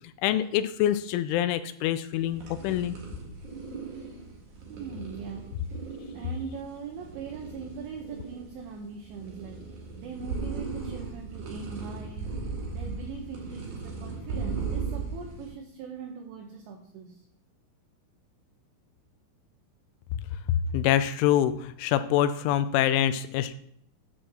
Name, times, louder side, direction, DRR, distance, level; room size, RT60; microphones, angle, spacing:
voice 1, 0.2-3.0 20.7-23.5, left 11 dB, 85° left, 11 dB, 2.8 m, -25 dB
sound 1, 2.2-15.5, right 4 dB, 50° right, 2.6 m, -37 dB
voice 2, 4.7-9.7 10.0-12.3 12.7-17.3 20.5-20.7, right 5 dB, 75° right, 2 dB, 2.8 m, -41 dB
10.0 x 4.4 x 6.3 m, 0.69 s
omnidirectional pair, 5.8 m